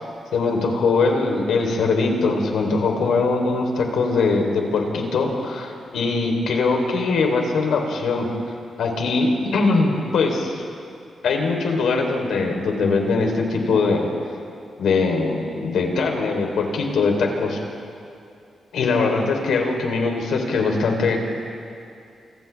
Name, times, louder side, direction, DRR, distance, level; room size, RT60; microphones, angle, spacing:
voice 1, 0.3-8.3 8.8-10.6 11.2-14.1 14.8-17.6 18.7-21.2, left 3 dB, 85° left, 2 dB, 3.7 m, -21 dB
29.5 x 27.5 x 3.5 m, 2.5 s
cardioid pair, 90°, 0 cm